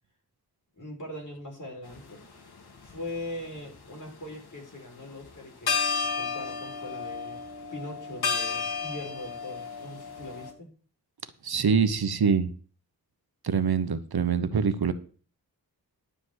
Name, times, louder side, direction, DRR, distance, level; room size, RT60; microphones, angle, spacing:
voice 1, 0.8-2.2 2.8-5.8 6.0-7.4 7.7-10.7, left 1 dB, 55° left, 0 dB, 4.8 m, -41 dB
sound 1, 1.9-2.1 2.8-3.8 5.2-5.3 5.7-10.5, left 5 dB, 85° left, 2.0 m, -32 dB
voice 2, 11.4-12.5 13.4-14.9, right 6 dB, 75° right, 12 dB, 1.1 m, -24 dB
11.5 x 5.1 x 8.1 m, 0.39 s
wide cardioid pair, 80°, 38 cm